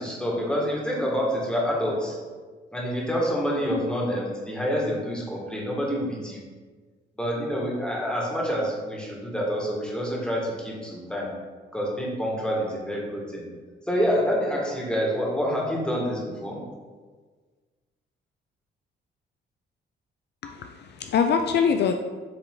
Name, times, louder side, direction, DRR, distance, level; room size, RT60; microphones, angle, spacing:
voice 1, 0.0-2.2 2.7-6.4 7.2-11.3 11.7-13.4 13.9-16.6, equal, 5° left, -3 dB, 1.9 m, -27 dB
voice 2, 20.4-21.9, left 6 dB, 60° left, 6 dB, 0.4 m, -23 dB
7.7 x 3.4 x 3.9 m, 1.4 s
cardioid pair, 90°, 20 cm